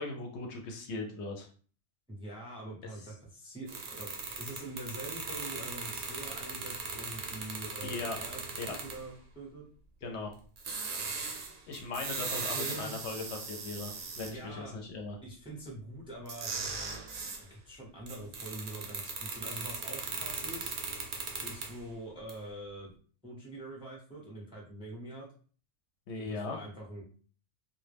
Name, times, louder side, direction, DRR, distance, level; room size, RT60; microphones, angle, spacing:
voice 1, 0.0-1.5 7.8-8.2 8.6-8.8 10.0-10.3 11.7-15.2 26.1-26.6, left 3 dB, 70° left, 2 dB, 0.8 m, -38 dB
voice 2, 2.1-9.6 12.3-13.0 14.2-14.8 15.2-16.5 17.5-20.7 21.4-22.9 23.2-25.3 26.2-27.0, right 1 dB, 5° right, -2 dB, 0.5 m, -44 dB
sound 1, 3.7-9.1 10.6-14.3 16.3-17.4 18.1-21.8 22.3-22.4, right 4 dB, 60° right, 0.6 m, -39 dB
2.2 x 2.1 x 3.3 m, 0.42 s
omnidirectional pair, 1.3 m